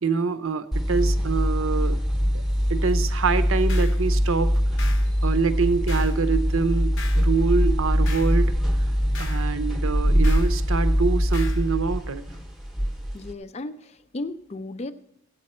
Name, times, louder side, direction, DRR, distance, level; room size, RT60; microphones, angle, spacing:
voice 1, 0.0-2.0 2.3-2.4 2.7-4.5 4.8-4.9 5.2-8.5 9.2-12.2, right 5 dB, 60° right, 12 dB, 0.6 m, -25 dB
sound 1, 0.7-13.3, equal, ahead, 0.8 m, -23 dB
sound 2, 3.7-4.0 4.8-5.1 5.9-6.2 7.0-7.3 8.0-8.4 9.1-9.5 10.2-10.5 11.3-11.6, left 5 dB, 55° left, 0.7 m, -39 dB
voice 2, 13.1-14.9, left 2 dB, 30° left, 12 dB, 0.4 m, -35 dB
15.5 x 8.3 x 4.3 m, 0.82 s
head